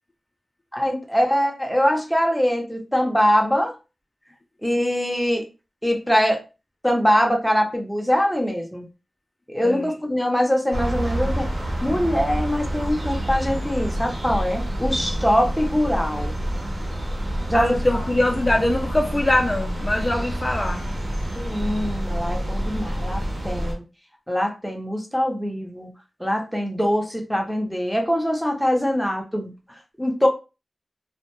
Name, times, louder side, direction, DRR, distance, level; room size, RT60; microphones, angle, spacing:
voice 1, 0.7-3.7 4.6-5.4 5.8-6.4 6.8-8.9 9.5-11.5 11.8-16.3 17.5-17.8 21.3-23.8 24.3-25.9 26.2-29.5 30.0-30.3, equal, 5° left, 2 dB, 0.7 m, -23 dB
sound 1, 10.7-23.7, right 1 dB, 55° right, 1.0 m, -28 dB
voice 2, 17.5-20.9, left 1 dB, 30° left, 1 dB, 0.5 m, -23 dB
2.4 x 2.1 x 3.0 m, 0.30 s
cardioid pair, 50°, 0 cm